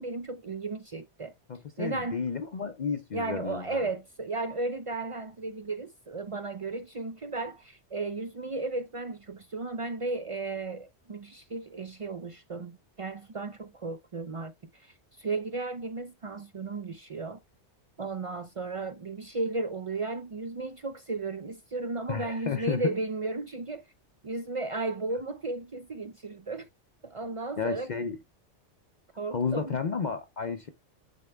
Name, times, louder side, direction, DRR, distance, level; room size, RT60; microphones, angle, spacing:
voice 1, 0.0-1.3 1.8-2.2 3.1-17.4 18.0-23.8 24.2-26.7 27.0-27.9 29.2-29.8, right 3 dB, 60° right, 0.3 m, -34 dB
voice 2, 1.5-3.8 22.1-22.8 27.6-28.2 29.3-30.7, left 6 dB, 50° left, 0.6 m, -32 dB
10.0 x 4.3 x 2.2 m
omnidirectional pair, 1.2 m